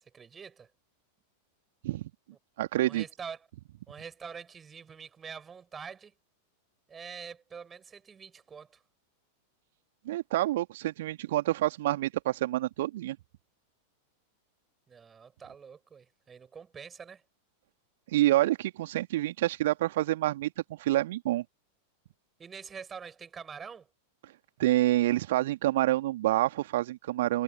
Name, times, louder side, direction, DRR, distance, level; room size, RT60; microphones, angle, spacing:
voice 1, 0.1-0.7 2.8-3.4 3.9-6.1 6.9-8.8 14.9-17.2 22.4-23.9, right 6 dB, 20° right, 8.0 m, -45 dB
voice 2, 2.6-3.0 10.0-13.2 18.1-21.4 24.6-27.4, right 15 dB, 55° right, 2.6 m, -27 dB
figure-of-eight pair, 90°, 0 cm